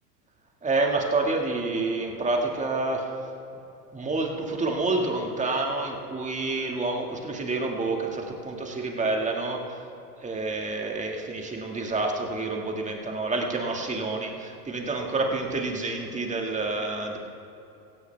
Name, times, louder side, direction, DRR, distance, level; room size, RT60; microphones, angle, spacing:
voice 1, 0.6-3.2 3.9-9.8 10.2-17.2, right 3 dB, 15° right, 1 dB, 1.9 m, -28 dB
16.5 x 16.0 x 3.5 m, 2.8 s
supercardioid pair, 120°, 46 cm